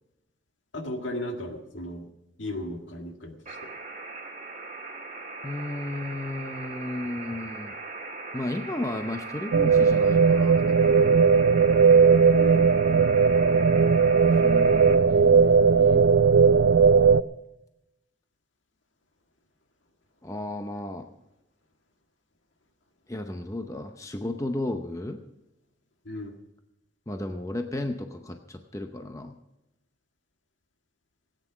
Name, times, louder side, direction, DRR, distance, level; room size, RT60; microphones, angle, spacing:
voice 1, 0.7-2.0 2.4-3.6 12.3-12.7 26.1-26.3, left 1 dB, 75° left, 3 dB, 1.9 m, -35 dB
sound 1, 3.5-15.0, right 3 dB, 35° right, 1.8 m, -39 dB
voice 2, 5.4-7.8 8.3-11.3 14.4-16.4 20.2-21.1 23.1-25.2 27.1-29.3, left 1 dB, 15° left, 5 dB, 0.7 m, -34 dB
sound 2, 9.5-17.2, right 5 dB, 80° right, 0.4 m, -18 dB
17.5 x 9.2 x 6.0 m, 0.91 s
head